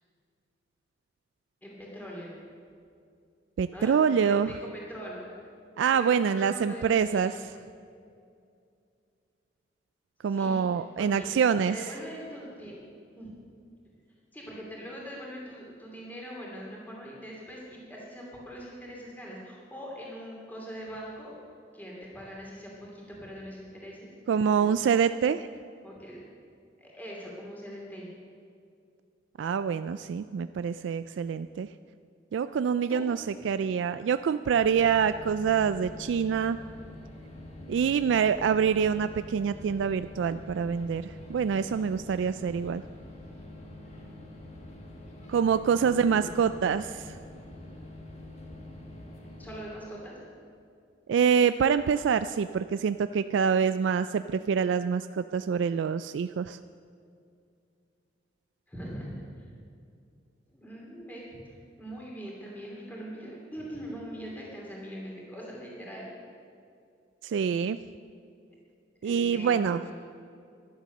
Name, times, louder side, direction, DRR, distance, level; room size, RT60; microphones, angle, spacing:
voice 1, 1.6-2.4 3.7-3.9 4.3-5.4 5.9-7.4 10.3-12.8 13.1-13.3 14.3-21.3 21.7-24.7 25.8-26.2 26.8-28.1 32.9-33.1 45.7-46.5 49.4-50.2 58.7-59.5 60.5-66.1 69.0-69.9, equal, 10° left, -3 dB, 2.7 m, -42 dB
voice 2, 3.6-4.5 5.8-7.3 10.2-11.8 24.3-25.5 29.4-31.7 32.3-36.6 37.7-42.8 45.3-47.2 51.1-56.6 67.2-67.8 69.0-69.8, right 7 dB, 80° right, 12 dB, 0.3 m, -26 dB
sound 1, 34.5-49.6, left 1 dB, 35° left, 1.8 m, -45 dB
13.0 x 11.0 x 6.6 m, 2.4 s
head